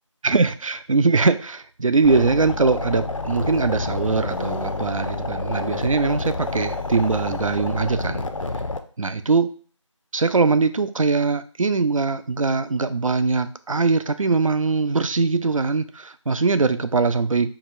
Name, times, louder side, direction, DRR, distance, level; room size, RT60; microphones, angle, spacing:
voice 1, 0.2-8.2 9.0-9.5 10.1-17.5, right 4 dB, 85° right, 11 dB, 0.4 m, -21 dB
sound 1, 2.0-8.8, left 3 dB, 75° left, 0.4 m, -29 dB
4.7 x 2.2 x 2.6 m, 0.40 s
figure-of-eight pair, 180°, 17 cm